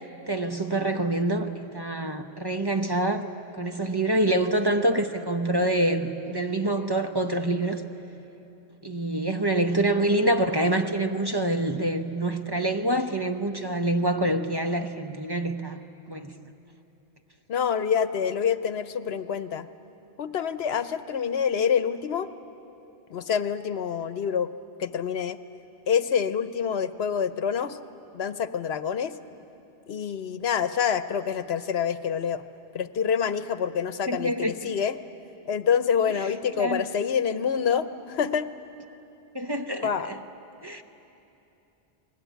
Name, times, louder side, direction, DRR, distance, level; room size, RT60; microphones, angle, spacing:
voice 1, 0.3-3.3 3.6-7.8 8.8-15.8 16.1-16.3 34.1-34.7 36.6-36.9 39.3-40.2 40.6-40.8, right 1 dB, 25° right, 6 dB, 0.9 m, -26 dB
voice 2, 17.5-19.7 20.2-22.3 23.1-24.5 24.8-25.4 25.9-27.8 28.1-29.2 29.9-32.4 32.7-35.0 35.5-38.5 39.8-40.1, left 7 dB, 75° left, 13 dB, 1.1 m, -26 dB
30.0 x 20.5 x 9.2 m, 2.9 s
omnidirectional pair, 1.1 m